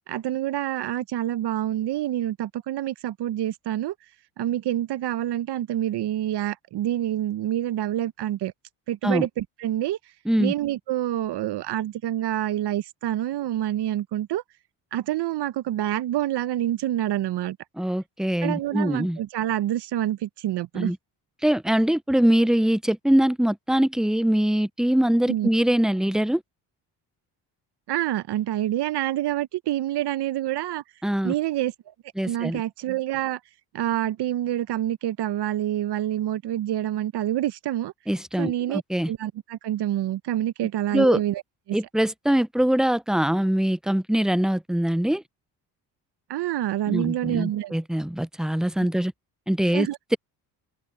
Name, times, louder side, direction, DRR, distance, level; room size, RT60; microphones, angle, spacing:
voice 1, 0.1-3.9 4.4-8.5 8.9-10.0 10.4-14.4 14.9-17.6 18.4-20.9 25.3-25.5 27.9-30.8 31.2-31.7 32.2-33.4 33.7-37.9 38.4-38.8 39.1-41.4 41.7-41.8 46.3-47.7 49.7-50.0, right 13 dB, 65° right, 0.9 m, -27 dB
voice 2, 17.8-19.2 20.7-21.0 21.4-26.4 31.0-31.3 32.2-32.6 38.1-39.1 40.9-41.2 41.7-45.2 46.9-49.1 49.5-50.2, right 1 dB, ahead, 0.5 m, -23 dB
open air
supercardioid pair, 70°, 44 cm